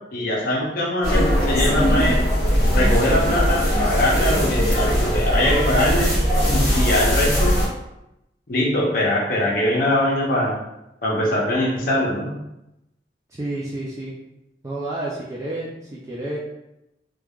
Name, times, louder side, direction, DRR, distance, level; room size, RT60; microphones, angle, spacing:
voice 1, 0.1-2.2 2.7-6.1 6.4-7.5 8.5-10.5 11.0-12.3, left 1 dB, 50° left, -3 dB, 0.6 m, -22 dB
sound 1, 1.0-7.7, equal, 20° left, 1.1 m, -20 dB
voice 2, 13.3-14.1 14.6-16.4, right 1 dB, 15° right, -6 dB, 0.3 m, -30 dB
3.2 x 2.3 x 2.3 m, 0.89 s
head